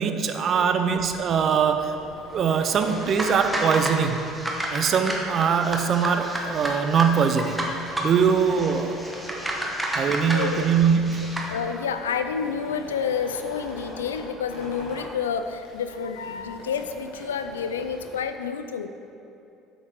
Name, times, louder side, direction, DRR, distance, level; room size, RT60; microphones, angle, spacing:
voice 1, 0.0-1.9 2.3-4.2 4.7-7.6 8.0-9.0 9.9-11.4, right 6 dB, 50° right, 7 dB, 0.6 m, -22 dB
sound 1, 0.9-18.2, left 1 dB, 75° left, 2.0 m, -45 dB
sound 2, 2.8-11.5, right 1 dB, 10° right, 1.4 m, -31 dB
voice 2, 10.3-10.7 11.5-18.9, left 6 dB, 90° left, 8 dB, 0.4 m, -29 dB
8.0 x 7.2 x 3.7 m, 2.7 s
hypercardioid pair, 65°, 0 cm